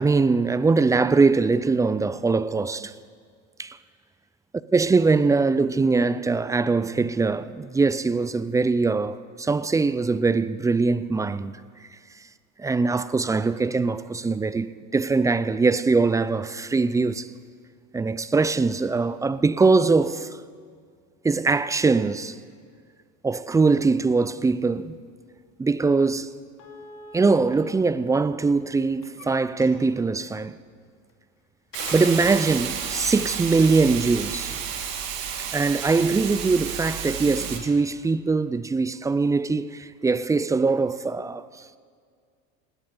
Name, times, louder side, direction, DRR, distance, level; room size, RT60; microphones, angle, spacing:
voice 1, 0.0-2.9 3.6-3.8 4.7-11.6 12.6-17.3 17.9-20.4 21.2-22.4 23.2-25.0 25.6-26.3 27.1-30.5 31.9-34.5 35.5-41.6, right 4 dB, 10° right, 0.3 m, -22 dB
sound 1, 25.5-25.6 25.9-26.0 26.6-27.5 28.4-29.3 29.6-30.0 31.1-31.2 31.7-32.5, left 3 dB, 50° left, 3.8 m, -41 dB
Hiss, 31.7-37.6, right 8 dB, 75° right, 2.1 m, -31 dB
19.5 x 17.5 x 3.8 m
hypercardioid pair, 85°, 40 cm